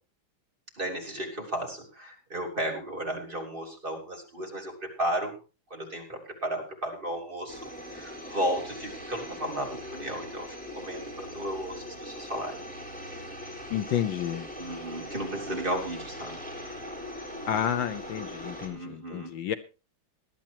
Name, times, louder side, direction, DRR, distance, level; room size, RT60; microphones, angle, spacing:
voice 1, 0.8-5.3 5.7-7.6 7.9-12.6 14.6-16.4 18.7-19.3, right 1 dB, 25° right, 0 dB, 3.2 m, -34 dB
sound 1, 7.5-18.7, left 1 dB, 5° left, 3.7 m, -41 dB
voice 2, 13.7-14.5 17.5-19.5, left 10 dB, 70° left, 11 dB, 1.5 m, -30 dB
19.5 x 11.5 x 2.9 m, 0.31 s
omnidirectional pair, 2.2 m